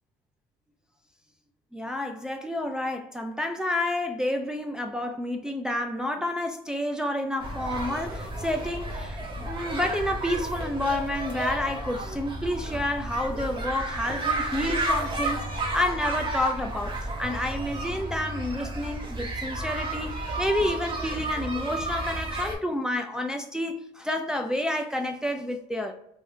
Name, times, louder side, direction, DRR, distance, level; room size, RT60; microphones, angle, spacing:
voice 1, 1.7-15.5 15.7-16.9 17.2-25.9, left 1 dB, 5° right, 0.3 m, -29 dB
sound 1, 7.4-22.6, right 2 dB, 30° right, 0.7 m, -32 dB
2.5 x 2.2 x 3.5 m
cardioid pair, 110°, 17 cm